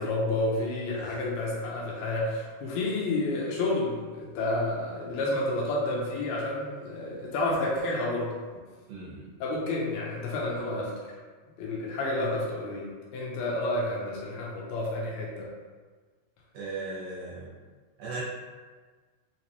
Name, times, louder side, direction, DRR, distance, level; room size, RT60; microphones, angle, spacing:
voice 1, 0.0-8.3 9.4-11.1 11.6-15.5, left 2 dB, 80° left, -4 dB, 2.5 m, -30 dB
voice 2, 8.9-9.2 16.5-17.5 18.0-18.2, right 3 dB, 70° right, -6 dB, 2.3 m, -37 dB
5.9 x 3.0 x 2.7 m, 1.4 s
omnidirectional pair, 4.6 m